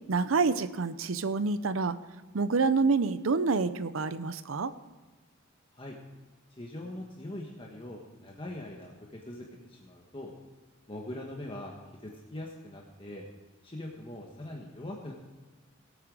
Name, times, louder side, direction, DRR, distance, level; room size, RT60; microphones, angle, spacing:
voice 1, 0.1-2.0 2.3-4.7, right 4 dB, 80° right, 13 dB, 0.6 m, -27 dB
voice 2, 6.6-10.3 10.9-11.7 12.0-13.2 13.6-15.1, left 1 dB, 25° left, -1 dB, 1.4 m, -42 dB
16.5 x 9.0 x 4.8 m, 1.3 s
head